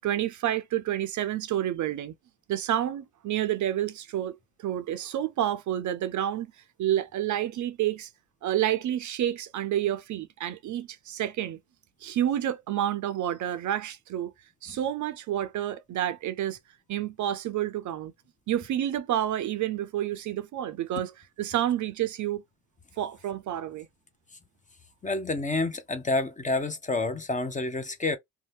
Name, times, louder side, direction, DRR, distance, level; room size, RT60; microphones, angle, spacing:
voice 1, 0.0-2.1 2.5-6.5 6.8-8.1 8.4-11.6 12.0-14.3 14.6-16.6 16.9-18.1 18.5-21.1 21.4-22.4 23.0-23.9, right 11 dB, 50° right, 0.5 m, -29 dB
voice 2, 25.0-28.2, left 2 dB, 20° left, 0.6 m, -28 dB
2.6 x 2.1 x 3.3 m
supercardioid pair, 70°, 40 cm